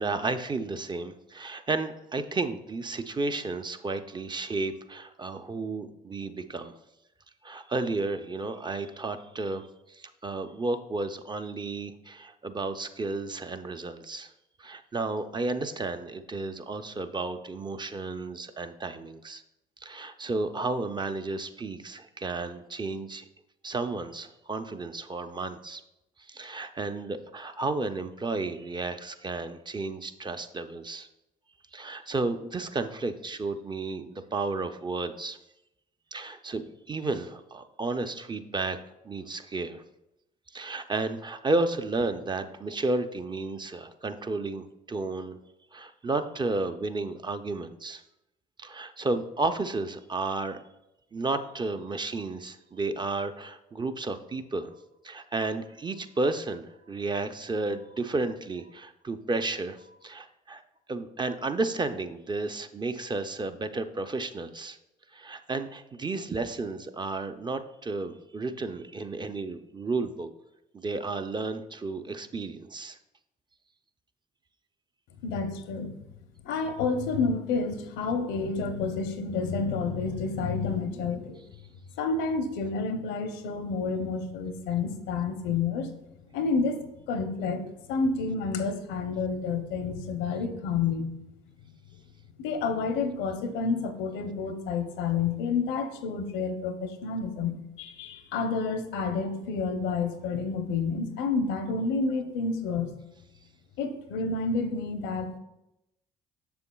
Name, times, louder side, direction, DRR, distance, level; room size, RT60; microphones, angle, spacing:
voice 1, 0.0-6.7 7.4-14.3 14.6-19.4 19.8-23.2 23.6-25.8 26.3-31.1 31.7-35.4 36.1-38.8 39.0-39.8 40.5-45.4 45.7-48.0 48.6-50.6 51.1-54.8 55.0-60.6 60.9-64.8 65.1-70.3 70.7-73.0, right 3 dB, 25° right, 8 dB, 0.5 m, -32 dB
voice 2, 75.2-75.9 76.4-81.4 82.0-85.9 86.3-86.8 87.1-87.6 87.9-91.1 92.4-102.9 103.8-105.4, left 4 dB, 80° left, 8 dB, 0.7 m, -29 dB
6.9 x 6.7 x 2.3 m, 0.89 s
hypercardioid pair, 60°, 19 cm